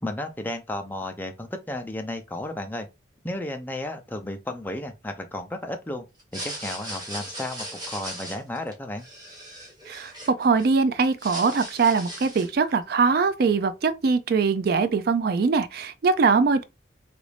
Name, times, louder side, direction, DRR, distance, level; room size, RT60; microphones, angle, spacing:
voice 1, 0.0-2.9 3.2-6.0 6.3-9.0, left 1 dB, 10° left, 0.4 m, -33 dB
sound 1, 6.2-10.7 11.0-12.6, right 1 dB, 20° right, 1.1 m, -38 dB
voice 2, 9.9-16.6, right 4 dB, 55° right, 0.4 m, -22 dB
3.0 x 2.6 x 3.2 m
head